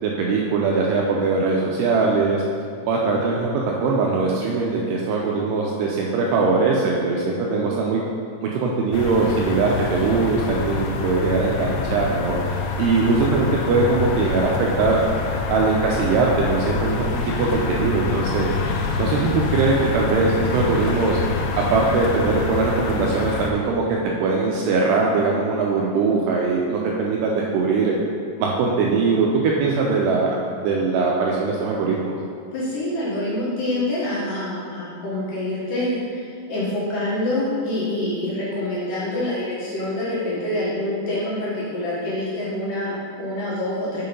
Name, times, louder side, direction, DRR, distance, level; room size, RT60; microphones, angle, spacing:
voice 1, 0.0-2.4 2.9-8.0 8.4-12.4 12.8-15.0 15.5-18.5 19.0-21.2 21.6-27.9 28.4-32.1, right 4 dB, 90° right, -2 dB, 2.4 m, -21 dB
sound 1, 8.9-23.5, left 4 dB, 90° left, 3.2 m, -26 dB
voice 2, 32.5-44.1, left 1 dB, 60° left, -9 dB, 2.6 m, -26 dB
6.7 x 5.7 x 5.3 m, 2.3 s
omnidirectional pair, 5.4 m